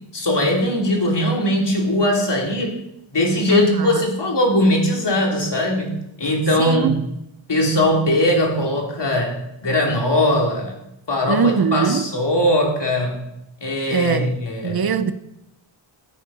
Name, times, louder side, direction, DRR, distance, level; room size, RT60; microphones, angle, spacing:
voice 1, 0.1-2.7 3.1-7.0 7.5-10.8 11.1-13.3 13.6-14.8, left 1 dB, 60° left, 3.0 m, -20 dB
voice 2, 3.5-4.1 6.6-7.0 11.3-12.1 13.9-14.3 14.6-15.1, right 6 dB, 50° right, 0.8 m, -21 dB
14.5 x 7.4 x 5.4 m
wide cardioid pair, 100°, 47 cm